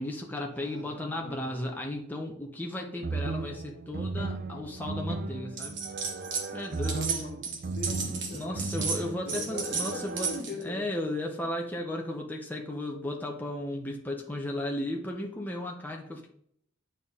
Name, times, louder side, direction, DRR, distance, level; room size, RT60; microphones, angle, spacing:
voice 1, 0.0-5.8 6.5-7.0 8.0-10.3 10.6-16.3, left 1 dB, 10° left, 0 dB, 0.8 m, -35 dB
voice 2, 0.5-1.7 6.7-8.7 8.9-10.8, left 2 dB, 45° left, -4 dB, 1.8 m, -42 dB
sound 1, 3.0-10.4, right 3 dB, 45° right, 0.4 m, -36 dB
sound 2, 5.6-6.5 6.7-10.6, right 5 dB, 65° right, 1.3 m, -33 dB
9.0 x 4.1 x 3.7 m, 0.66 s
head